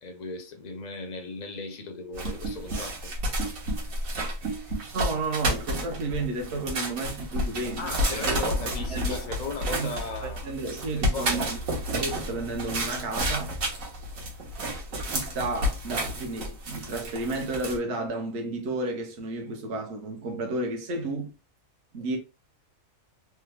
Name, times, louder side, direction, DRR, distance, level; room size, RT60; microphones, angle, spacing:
voice 1, 0.0-3.1 7.8-10.5 10.9-11.4, left 4 dB, 50° left, 0.5 m, -37 dB
sound 1, 2.1-17.8, right 1 dB, 75° right, 1.3 m, -31 dB
voice 2, 4.9-9.1 9.8-9.9 10.2-13.6 14.1-14.2 15.0-21.3 21.9-22.2, right 2 dB, 60° right, 0.9 m, -32 dB
3.3 x 2.0 x 3.2 m
omnidirectional pair, 1.4 m